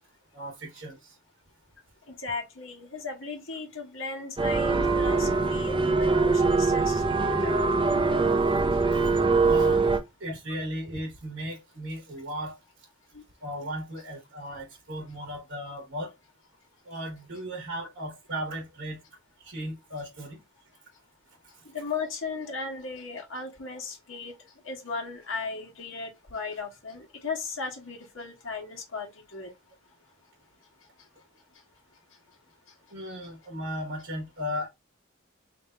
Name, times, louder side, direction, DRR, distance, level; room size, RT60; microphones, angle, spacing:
voice 1, 0.3-1.1 8.9-9.8 10.2-12.5 13.4-16.1 16.8-19.0 19.4-20.4 21.6-21.7 32.9-34.7, equal, 60° right, 1.6 m, -36 dB
voice 2, 2.2-7.7 13.1-13.2 21.7-24.3 24.6-29.5, left 4 dB, 70° left, 1.3 m, -36 dB
sound 1, 4.4-10.0, right 3 dB, 25° right, 0.7 m, -23 dB
3.5 x 2.6 x 4.5 m
head